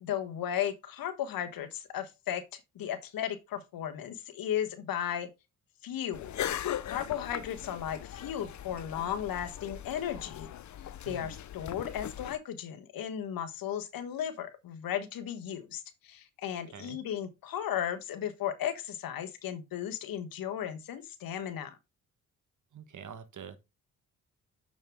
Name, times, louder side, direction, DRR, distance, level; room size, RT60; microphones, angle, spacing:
voice 1, 0.0-5.3 5.8-10.5 11.0-21.8, left 10 dB, 75° left, 1.3 m, -35 dB
sound 1, 6.1-12.4, left 11 dB, 55° left, 0.7 m, -39 dB
voice 2, 22.7-23.6, right 7 dB, 55° right, 1.4 m, -45 dB
6.5 x 6.4 x 3.5 m
supercardioid pair, 55°, 35 cm